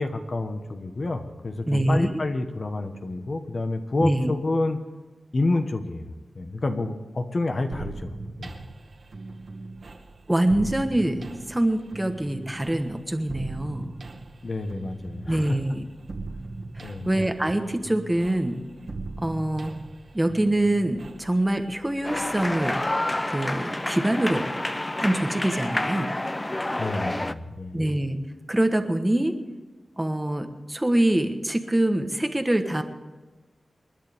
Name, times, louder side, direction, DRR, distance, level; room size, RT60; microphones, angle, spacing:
voice 1, 0.0-4.8 5.3-6.1 6.3-8.1 8.4-8.5 14.4-15.5 16.8-17.1 26.8-27.8, left 2 dB, 45° left, 6 dB, 1.4 m, -28 dB
voice 2, 1.7-2.1 4.0-4.3 10.3-13.9 15.3-15.8 16.8-18.6 19.2-19.7 20.1-22.8 23.3-24.5 25.0-26.1 27.7-28.2 28.5-29.3 30.0-32.8, right 1 dB, 15° right, 5 dB, 1.3 m, -24 dB
sound 1, 7.7-23.3, right 3 dB, 60° right, 2.0 m, -40 dB
sound 2, 22.0-27.3, left 1 dB, 20° left, 0.5 m, -29 dB
29.0 x 11.0 x 3.7 m, 1.3 s
wide cardioid pair, 105°, 0 cm